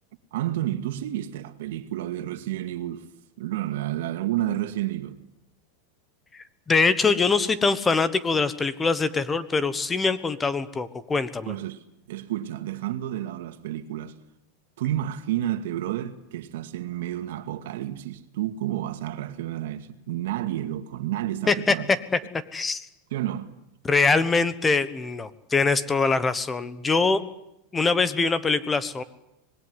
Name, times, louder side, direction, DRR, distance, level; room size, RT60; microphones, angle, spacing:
voice 1, 0.3-3.1 3.4-5.2 11.5-14.1 14.8-21.9 23.1-23.5, right 13 dB, 70° right, 2.2 m, -30 dB
voice 2, 6.7-11.5 21.5-21.7 22.5-22.9 23.8-27.2 27.7-29.0, left 4 dB, 10° left, 1.2 m, -23 dB
25.5 x 21.0 x 9.8 m
supercardioid pair, 165°, 0 cm